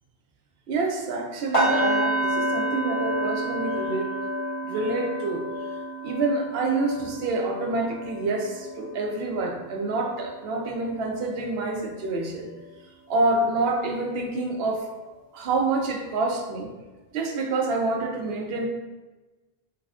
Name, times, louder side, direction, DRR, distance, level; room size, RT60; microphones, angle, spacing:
voice 1, 0.7-4.1 4.6-5.5 6.0-12.5 13.1-14.9 15.3-16.7 17.1-18.7, right 3 dB, 75° right, 3 dB, 0.8 m, -27 dB
sound 1, 1.5-11.5 11.8-12.1 12.5-12.7, right 1 dB, 30° left, 1.4 m, -30 dB
3.4 x 3.2 x 2.4 m, 1.2 s
omnidirectional pair, 1.0 m